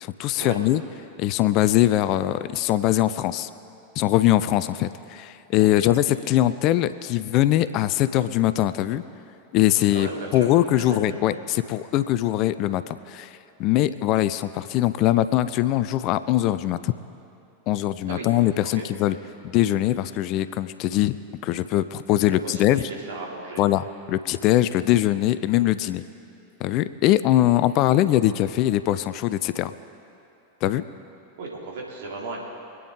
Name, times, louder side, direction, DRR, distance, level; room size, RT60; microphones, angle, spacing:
voice 1, 0.0-0.8 1.2-3.5 4.0-9.0 9.5-16.9 17.7-19.2 19.4-21.2 21.4-22.8 23.6-26.0 26.6-29.7 30.6-30.8, left 14 dB, 40° left, 14 dB, 0.4 m, -22 dB
voice 2, 9.9-10.5 10.9-11.0 18.1-18.3 18.6-18.8 22.4-23.6 31.4-32.4, right 3 dB, 55° right, -2 dB, 2.8 m, -35 dB
25.0 x 9.4 x 3.8 m, 2.7 s
figure-of-eight pair, 90°, 0 cm